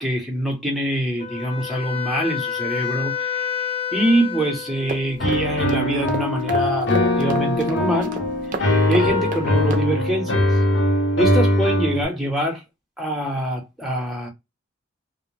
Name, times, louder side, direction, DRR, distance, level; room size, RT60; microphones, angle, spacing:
voice 1, 0.0-8.2 8.5-10.6 11.2-12.6 13.0-14.3, right 1 dB, ahead, 0.7 m, -24 dB
Wind instrument woodwind instrument, 1.2-5.3, left 8 dB, 30° left, 0.3 m, -29 dB
sound 1, 4.9-9.8, right 4 dB, 45° right, 0.4 m, -34 dB
Piano, 5.2-12.0, left 1 dB, 65° left, 0.7 m, -21 dB
2.5 x 2.0 x 3.1 m
head